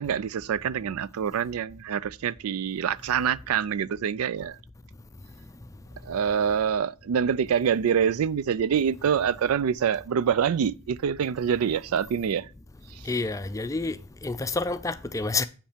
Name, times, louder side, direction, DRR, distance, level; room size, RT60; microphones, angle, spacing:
voice 1, 0.0-4.6 6.0-12.5 12.9-13.1, right 7 dB, 80° right, 0.4 m, -26 dB
voice 2, 13.1-14.0 14.2-15.4, left 3 dB, 15° left, 0.4 m, -28 dB
7.3 x 5.4 x 5.0 m
head